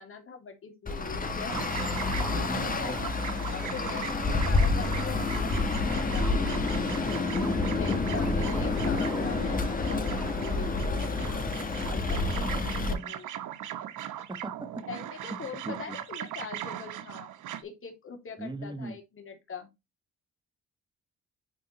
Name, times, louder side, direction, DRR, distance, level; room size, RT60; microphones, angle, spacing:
voice 1, 0.0-1.6 2.0-6.8 7.6-11.4 11.9-13.3 14.9-17.3 17.6-19.7, left 6 dB, 45° left, 2.6 m, -43 dB
Traffic noise roadway noise, 0.9-12.9, left 3 dB, 30° left, 1.6 m, -28 dB
sound 1, 1.5-17.6, right 11 dB, 80° right, 1.2 m, -40 dB
voice 2, 7.7-8.6 12.5-13.1 14.3-14.7 15.6-16.0 18.4-19.0, right 2 dB, 15° right, 1.4 m, -40 dB
9.8 x 3.7 x 3.1 m
cardioid pair, 90°, 30 cm